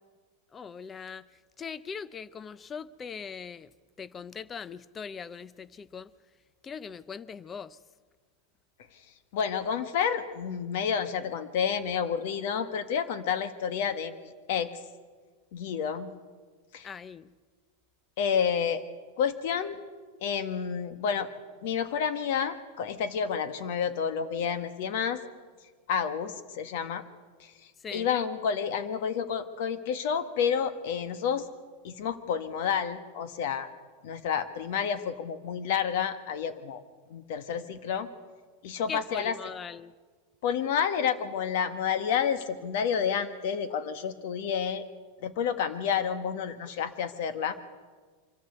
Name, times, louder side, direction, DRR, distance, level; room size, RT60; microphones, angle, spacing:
voice 1, 0.5-1.2 1.6-3.7 4.0-6.1 6.6-7.8 16.8-17.3 27.8-28.1 38.9-39.9, left 6 dB, 15° left, 18 dB, 0.5 m, -40 dB
voice 2, 9.3-14.7 15.5-16.1 16.7-16.9 18.2-18.8 19.2-19.8 20.2-21.3 21.6-25.2 25.9-27.0 27.4-27.5 27.9-31.5 31.8-33.7 34.0-36.8 37.1-38.1 38.6-39.3 40.4-44.8 45.2-47.6, left 7 dB, 60° left, 11 dB, 1.5 m, -30 dB
24.5 x 14.0 x 8.0 m, 1.5 s
supercardioid pair, 160°, 0 cm